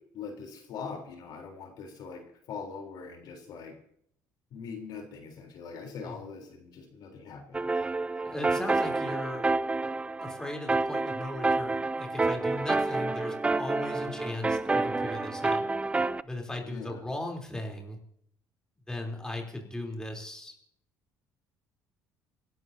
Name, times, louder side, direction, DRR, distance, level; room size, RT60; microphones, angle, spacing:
voice 1, 0.1-3.7 4.5-7.7 14.1-14.2 16.6-17.0, left 5 dB, 65° left, 3 dB, 3.6 m, -42 dB
sound 1, 7.5-16.2, right 3 dB, 15° right, 0.5 m, -29 dB
voice 2, 8.2-9.4 10.2-15.7 16.2-18.0 18.9-20.5, left 1 dB, 10° left, 1 dB, 3.5 m, -37 dB
29.0 x 12.5 x 2.8 m, 0.70 s
cardioid pair, 95°, 8 cm